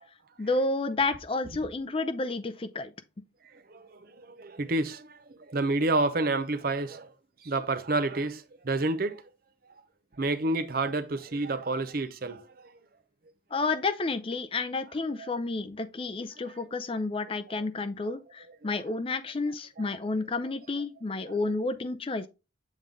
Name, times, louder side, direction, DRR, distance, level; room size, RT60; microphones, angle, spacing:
voice 1, 0.4-2.9 13.5-22.3, left 3 dB, 30° left, 0.5 m, -30 dB
voice 2, 3.4-7.1 7.4-9.2 10.2-12.7 15.2-15.3 16.3-16.6 17.5-17.6 18.0-18.1 18.6-18.8 19.8-19.9, right 2 dB, 50° right, 0.7 m, -30 dB
7.5 x 3.6 x 3.7 m
head